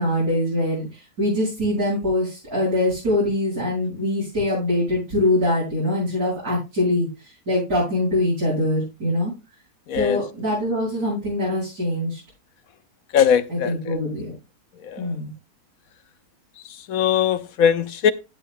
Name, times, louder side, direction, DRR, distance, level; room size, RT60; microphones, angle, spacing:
voice 1, 0.0-7.1 7.5-9.3 9.9-12.2 13.5-14.3 15.0-15.3, left 1 dB, 75° right, 8.2 m, -23 dB
voice 2, 9.9-10.2 13.1-13.7 14.9-15.0 16.9-18.1, left 8 dB, 65° left, 1.1 m, -20 dB
16.5 x 8.3 x 2.2 m
omnidirectional pair, 1.8 m